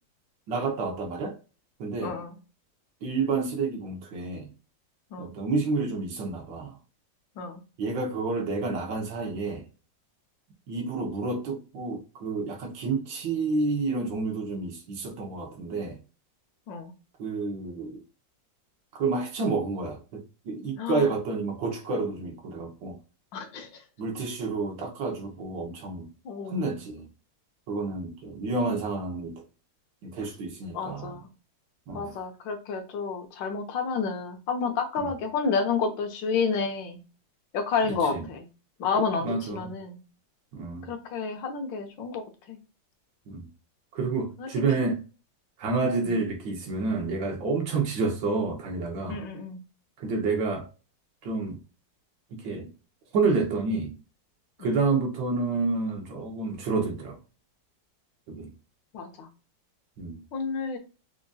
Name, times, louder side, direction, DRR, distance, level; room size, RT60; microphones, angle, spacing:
voice 1, 0.5-1.3 1.8-2.2 3.0-4.5 5.2-6.8 7.8-9.6 10.7-16.0 17.2-18.0 18.9-23.0 24.0-26.1 26.5-27.1 27.7-29.3 30.0-31.2 31.9-32.2 35.0-35.2 38.1-38.2 39.2-39.7 40.5-40.9 43.3-43.5 43.9-45.0 45.6-49.2 50.0-50.7 51.2-51.6 52.3-52.7 53.1-53.9 54.6-57.2 58.3-58.5 60.0-60.2, right 3 dB, 90° right, 1.7 m, -29 dB
voice 2, 2.0-2.3 5.1-5.3 7.4-7.6 16.7-16.9 20.8-21.1 23.3-23.7 26.2-26.7 30.7-31.3 31.9-37.0 37.5-38.5 38.8-40.0 40.9-42.2 42.5-42.6 44.4-44.5 46.1-46.2 49.1-49.6 54.6-54.7 58.9-59.3 60.3-60.8, left 5 dB, 85° left, 1.5 m, -30 dB
4.9 x 2.6 x 2.4 m
omnidirectional pair, 2.0 m